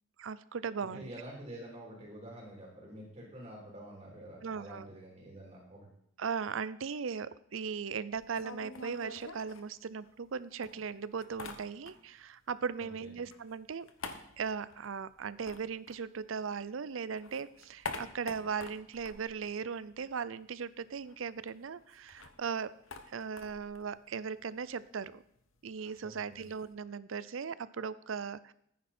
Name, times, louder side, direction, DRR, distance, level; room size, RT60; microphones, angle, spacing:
voice 1, 0.2-1.1 4.4-4.9 6.2-13.9 14.4-22.7 23.1-25.2 25.6-28.5, right 6 dB, 75° right, 17 dB, 0.5 m, -38 dB
voice 2, 0.8-5.9 12.8-13.1 26.0-26.4, right 1 dB, 30° right, -2 dB, 3.5 m, -48 dB
sound 1, 8.1-10.3 10.6-12.3 12.5-16.7 17.0-20.3 20.6-20.7 20.9-26.7, left 3 dB, 85° left, 1.3 m, -48 dB
14.5 x 9.4 x 4.3 m, 0.72 s
head